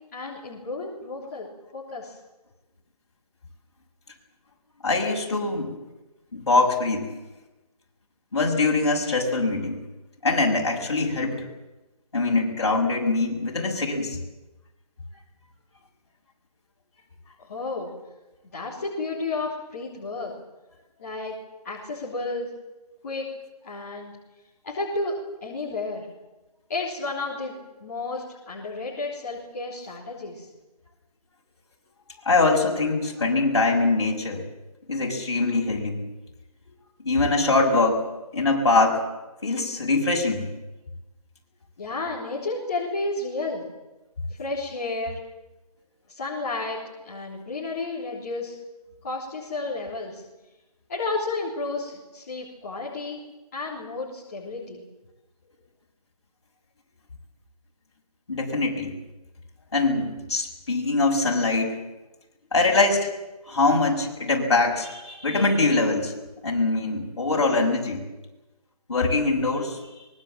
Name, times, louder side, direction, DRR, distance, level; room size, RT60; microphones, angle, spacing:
voice 1, 0.1-1.5 1.7-2.1 17.5-17.9 18.5-20.3 21.0-21.4 21.6-22.5 23.0-23.2 23.6-24.1 24.6-26.1 26.7-27.6 27.8-30.5 41.8-43.6 44.4-45.2 46.1-46.8 47.0-48.6 49.0-50.2 50.9-53.2 53.5-54.8, left 3 dB, 25° left, -7 dB, 3.6 m, -32 dB
voice 2, 4.8-5.8 6.3-7.1 8.3-9.8 10.2-11.4 12.1-14.2 32.2-34.4 34.9-36.0 37.0-38.0 38.3-39.0 39.4-40.4 58.3-58.9 59.7-61.8 62.5-63.1 63.5-66.1 66.4-68.0 68.9-69.8, left 3 dB, 45° left, 0 dB, 6.3 m, -23 dB
24.0 x 21.5 x 7.6 m, 1.1 s
figure-of-eight pair, 170°, 20 cm